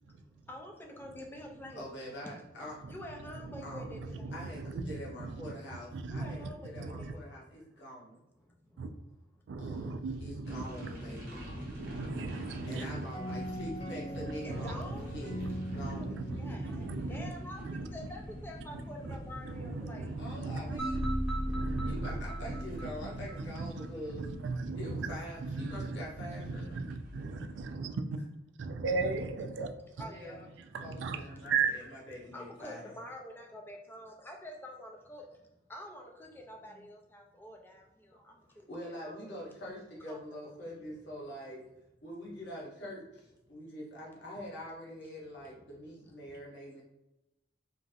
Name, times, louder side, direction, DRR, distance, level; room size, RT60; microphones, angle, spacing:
voice 1, 0.5-1.8 2.3-2.4 2.9-4.4 6.1-7.2 14.4-15.1 16.4-20.1 29.6-30.5 31.3-31.5 32.1-35.2 35.7-39.4 40.1-40.2, left 1 dB, 10° left, 1 dB, 0.4 m, -47 dB
voice 2, 1.7-2.7 3.6-3.8 4.3-8.1 9.5-11.4 12.6-15.4 15.6-16.3 20.2-21.0 21.8-24.3 24.8-26.8 30.0-30.4 30.8-32.9 36.6-36.8 38.1-38.3 38.7-41.6 42.0-46.8, equal, 70° left, -4 dB, 1.0 m, -45 dB
voice 3, 3.9-5.5 5.9-7.1 8.8-8.9 9.5-10.9 11.8-13.1 13.3-13.4 14.2-14.7 15.3-17.3 17.6-17.9 19.5-21.1 21.5-22.6 23.1-23.9 24.1-25.1 25.4-28.2 28.6-29.7 30.7-31.9, right 4 dB, 75° right, 7 dB, 0.3 m, -37 dB
sound 1, 10.4-27.7, equal, 50° right, 0.7 m, -45 dB
sound 2, 13.1-17.8, equal, 40° left, 1.0 m, -42 dB
sound 3, 20.8-23.9, right 1 dB, 5° right, 1.0 m, -35 dB
2.9 x 2.5 x 2.6 m, 0.94 s
head